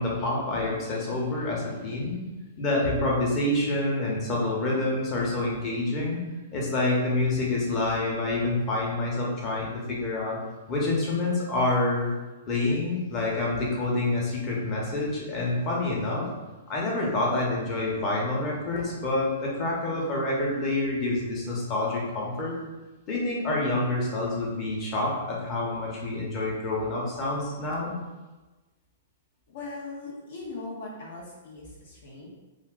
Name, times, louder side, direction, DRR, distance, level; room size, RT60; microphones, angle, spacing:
voice 1, 0.0-2.2 2.6-6.2 6.5-10.4 10.7-12.1 12.5-16.3 16.7-22.5 23.1-28.0, left 2 dB, 35° left, -3 dB, 0.9 m, -27 dB
voice 2, 29.5-32.3, left 3 dB, 65° left, -4 dB, 0.7 m, -39 dB
2.8 x 2.5 x 3.6 m, 1.2 s
figure-of-eight pair, 115°, 0 cm